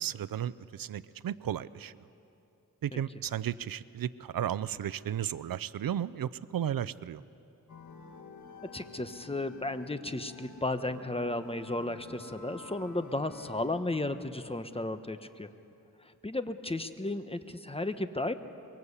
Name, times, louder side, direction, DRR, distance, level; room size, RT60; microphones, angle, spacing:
voice 1, 0.0-1.9 2.8-7.2, right 10 dB, 80° right, 17 dB, 0.6 m, -34 dB
sound 1, 7.7-13.8, left 3 dB, 60° left, 1.9 m, -50 dB
voice 2, 8.7-15.5 16.0-18.3, left 2 dB, 15° left, 9 dB, 1.2 m, -34 dB
24.0 x 23.0 x 8.3 m, 2.7 s
cardioid pair, 70°, 34 cm